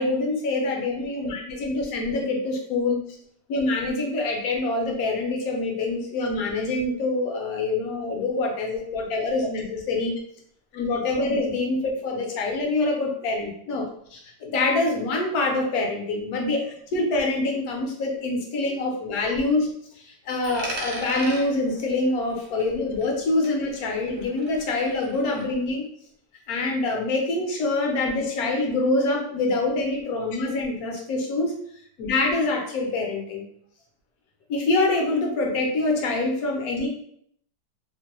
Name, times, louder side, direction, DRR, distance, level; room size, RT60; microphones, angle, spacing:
voice 1, 0.0-3.0 3.5-10.1 10.7-19.7 20.0-25.8 26.5-31.5 32.0-33.5 34.5-36.9, left 2 dB, 65° left, 0 dB, 1.0 m, -25 dB
Coin (dropping), 20.4-23.2 23.4-25.5, right 1 dB, 60° right, 0.7 m, -38 dB
3.0 x 2.2 x 2.9 m, 0.66 s
omnidirectional pair, 1.9 m